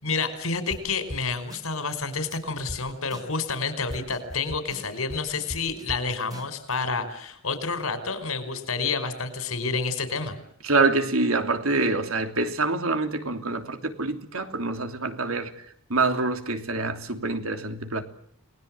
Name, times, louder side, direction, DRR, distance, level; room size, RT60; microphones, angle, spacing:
voice 1, 0.0-10.3, left 4 dB, 90° left, 5.1 m, -29 dB
sound 1, 0.7-0.8 1.1-1.2 1.5-2.0 2.3-2.4 2.7-2.8 3.1-3.6 3.9-6.0 6.3-6.8, equal, 20° right, 3.1 m, -39 dB
voice 2, 10.6-15.6 15.9-18.0, right 3 dB, 85° right, 3.1 m, -26 dB
30.0 x 20.5 x 7.8 m
head